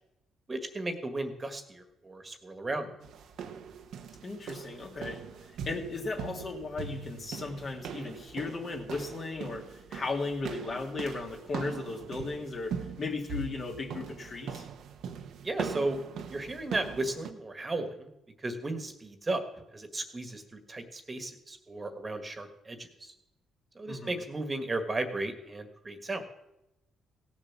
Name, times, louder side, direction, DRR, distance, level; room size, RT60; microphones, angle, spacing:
voice 1, 0.5-2.9 15.4-16.0 16.3-18.1 18.4-19.4 19.7-23.1 23.7-26.2, right 2 dB, 25° right, 8 dB, 1.7 m, -35 dB
sound 1, 3.0-17.3, right 6 dB, 75° right, 1.1 m, -41 dB
voice 2, 4.2-5.2 5.6-14.7 23.9-24.2, left 3 dB, 45° left, 2 dB, 2.6 m, -36 dB
17.0 x 7.2 x 7.3 m, 0.88 s
cardioid pair, 90°, 0 cm